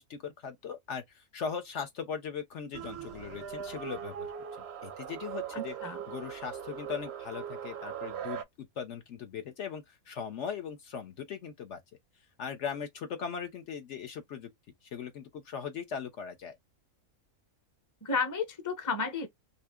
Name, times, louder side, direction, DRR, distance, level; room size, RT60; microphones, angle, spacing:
voice 1, 0.0-4.3 4.8-5.8 6.1-11.8 12.4-14.5 14.9-16.6, left 7 dB, 60° left, 0.9 m, -39 dB
sound 1, 2.7-8.4, right 8 dB, 65° right, 0.7 m, -40 dB
voice 2, 5.5-6.0 18.0-19.3, left 4 dB, 20° left, 0.6 m, -32 dB
2.7 x 2.4 x 3.5 m
omnidirectional pair, 1.5 m